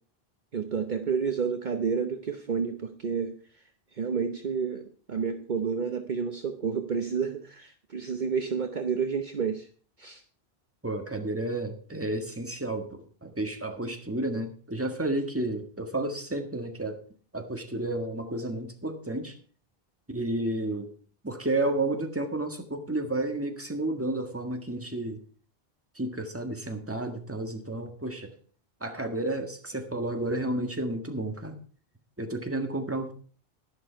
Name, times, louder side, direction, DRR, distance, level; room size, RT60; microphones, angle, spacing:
voice 1, 0.5-3.3 3.9-9.7 10.0-10.2, right 6 dB, 50° right, 7 dB, 1.0 m, -30 dB
voice 2, 10.8-17.0 17.3-19.3 20.1-20.9 21.2-25.2 25.9-28.3 28.8-31.6 32.2-33.1, right 2 dB, 15° right, 4 dB, 1.6 m, -31 dB
11.0 x 11.0 x 4.5 m, 0.42 s
omnidirectional pair, 1.0 m